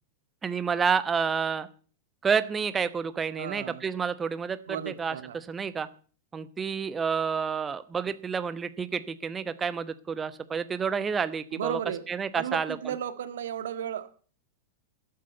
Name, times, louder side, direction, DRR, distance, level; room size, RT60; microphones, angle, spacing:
voice 1, 0.4-1.7 2.2-5.9 6.3-11.8 12.1-12.9, right 6 dB, 20° right, 13 dB, 1.0 m, -29 dB
voice 2, 3.3-3.8 4.7-5.4 11.5-12.0 12.4-14.1, right 9 dB, 65° right, 11 dB, 1.7 m, -34 dB
13.5 x 8.6 x 9.3 m, 0.43 s
figure-of-eight pair, 95°, 0 cm